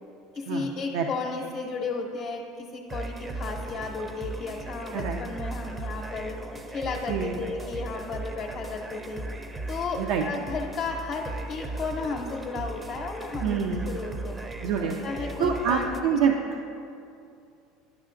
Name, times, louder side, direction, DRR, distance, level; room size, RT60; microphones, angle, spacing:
voice 1, 0.3-6.4 6.7-9.2 9.7-14.4 15.0-16.3, left 4 dB, 35° left, 1 dB, 0.7 m, -34 dB
sound 1, 2.9-16.0, right 2 dB, 15° right, 0.5 m, -37 dB
voice 2, 13.4-13.9 14.6-15.0 15.4-16.3, right 7 dB, 75° right, 3 dB, 0.4 m, -26 dB
10.5 x 5.5 x 2.5 m, 2.6 s
supercardioid pair, 115°, 0 cm